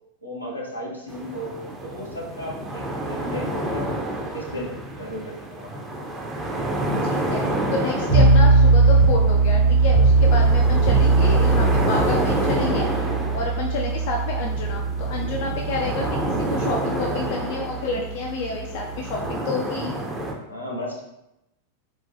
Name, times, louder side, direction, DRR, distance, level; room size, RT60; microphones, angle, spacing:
voice 1, 0.2-3.9 4.3-4.7 5.0-5.7 20.5-21.0, left 1 dB, 85° left, -3 dB, 0.7 m, -34 dB
sound 1, 1.1-20.3, right 1 dB, 15° right, 0.5 m, -29 dB
voice 2, 7.1-7.4 7.7-12.9 13.3-19.9, left 3 dB, 50° left, 0 dB, 0.3 m, -29 dB
sound 2, 8.1-19.3, right 3 dB, 75° right, 1.0 m, -19 dB
4.0 x 2.2 x 2.6 m, 0.88 s
figure-of-eight pair, 90°, 0 cm